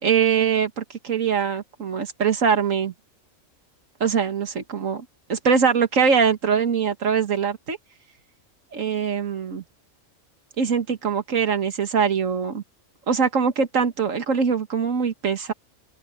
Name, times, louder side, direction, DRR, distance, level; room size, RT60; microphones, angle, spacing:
voice 1, 0.0-2.9 4.0-7.8 8.7-9.6 10.6-12.6 13.1-15.5, right 6 dB, 75° right, 2.0 m, -22 dB
open air
omnidirectional pair, 1.3 m